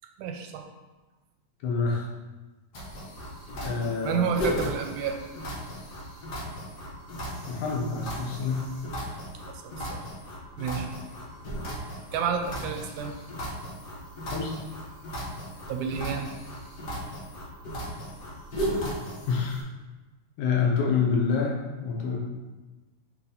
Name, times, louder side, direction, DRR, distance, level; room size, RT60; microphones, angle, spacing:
voice 1, 0.2-0.7 4.0-5.2 9.6-10.0 10.6-10.9 12.1-13.1 15.7-16.3, right 6 dB, 80° right, 4 dB, 1.9 m, -30 dB
voice 2, 1.6-2.1 3.6-4.5 7.5-8.7 14.3-14.5 19.3-19.6 20.4-22.2, left 5 dB, 75° left, -2 dB, 2.4 m, -27 dB
sound 1, 2.7-19.6, equal, 60° left, 1.1 m, -36 dB
5.7 x 4.6 x 4.0 m, 1.2 s
omnidirectional pair, 3.6 m